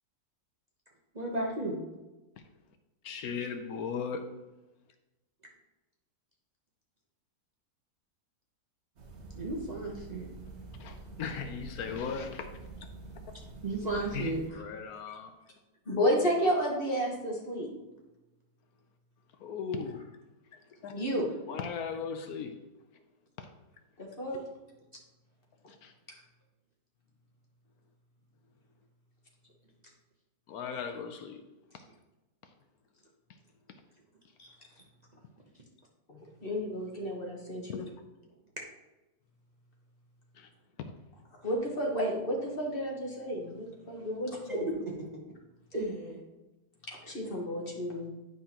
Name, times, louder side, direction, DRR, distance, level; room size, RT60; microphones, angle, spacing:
voice 1, 1.1-1.8 9.3-10.3 13.6-14.4 44.5-44.6 45.7-46.2, right 2 dB, 30° right, -3 dB, 0.9 m, -34 dB
voice 2, 3.0-4.4 10.8-12.6 14.1-15.3 19.4-20.1 20.5-20.9 21.5-22.6 23.4-23.5 25.7-25.9 30.5-31.4 37.7-37.9 40.3-40.5, left 6 dB, 75° left, 6 dB, 1.1 m, -37 dB
sound 1, 9.0-14.5, right 3 dB, 50° right, 1.2 m, -47 dB
voice 3, 15.8-17.7 20.9-21.3 24.0-24.4 36.1-37.8 41.4-44.7 46.9-48.1, equal, 35° left, -2 dB, 1.6 m, -31 dB
9.4 x 5.7 x 2.9 m, 1.0 s
omnidirectional pair, 1.7 m